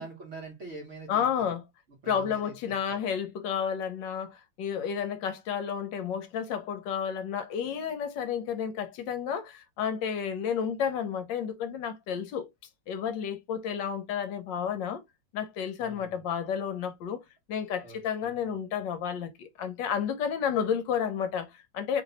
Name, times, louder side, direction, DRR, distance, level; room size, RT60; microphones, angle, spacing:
voice 1, 0.0-1.2 2.0-3.0 15.8-16.1 17.8-18.3, right 3 dB, 50° right, 0.9 m, -44 dB
voice 2, 1.1-1.6 2.1-12.5 12.9-15.0 15.3-17.2 17.5-22.0, left 7 dB, 75° left, 1.2 m, -31 dB
3.1 x 2.5 x 4.1 m
omnidirectional pair, 2.2 m